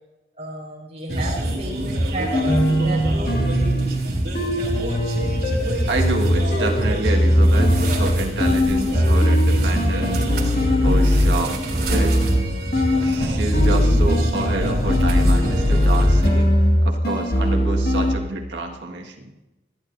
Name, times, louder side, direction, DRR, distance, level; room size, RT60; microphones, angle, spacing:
voice 1, 0.4-3.3, right 1 dB, 35° right, -2 dB, 5.1 m, -32 dB
sound 1, 1.1-16.3, right 1 dB, 60° right, 3.4 m, -25 dB
sound 2, 2.3-11.5 11.9-13.3 13.5-18.2, left 1 dB, 55° left, 2.2 m, -20 dB
voice 2, 5.9-10.3 10.8-12.2 13.0-16.5 16.8-19.3, right 2 dB, 90° right, 2 dB, 1.8 m, -28 dB
28.5 x 11.0 x 2.7 m, 1.0 s
head